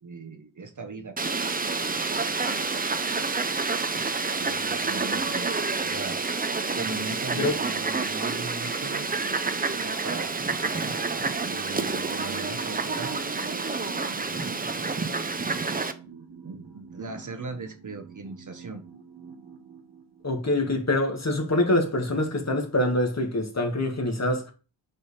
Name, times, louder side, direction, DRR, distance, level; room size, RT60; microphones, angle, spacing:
voice 1, 0.0-1.2 4.4-5.5 5.8-6.2 6.7-10.4 11.4-14.0 16.4-18.8, right 3 dB, 40° right, 1.0 m, -39 dB
Fowl, 1.2-15.9, right 4 dB, 20° right, 0.5 m, -28 dB
sound 1, 11.7-20.7, right 6 dB, 65° right, 1.5 m, -46 dB
voice 2, 20.2-24.5, left 1 dB, 35° left, 1.7 m, -25 dB
7.5 x 3.4 x 4.2 m
wide cardioid pair, 95°, 45 cm